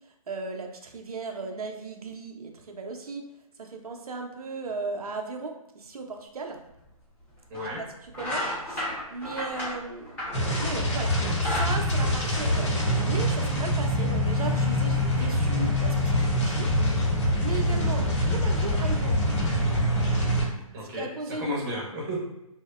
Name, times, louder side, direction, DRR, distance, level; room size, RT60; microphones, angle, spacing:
voice 1, 0.3-3.2 3.6-6.6 8.2-10.2 10.5-12.7 13.1-16.7 17.1-19.3 20.9-21.5, right 4 dB, 80° right, 3 dB, 0.5 m, -36 dB
sound 1, 6.8-6.9 7.5-7.7 8.1-10.8 11.2-12.9, left 1 dB, 10° left, 0.6 m, -33 dB
voice 2, 7.5-7.8 20.7-22.3, equal, 30° right, -4 dB, 0.7 m, -33 dB
sound 2, 10.3-20.5, left 1 dB, 50° left, 0.8 m, -25 dB
2.6 x 2.1 x 2.3 m, 0.90 s
hypercardioid pair, 145°, 19 cm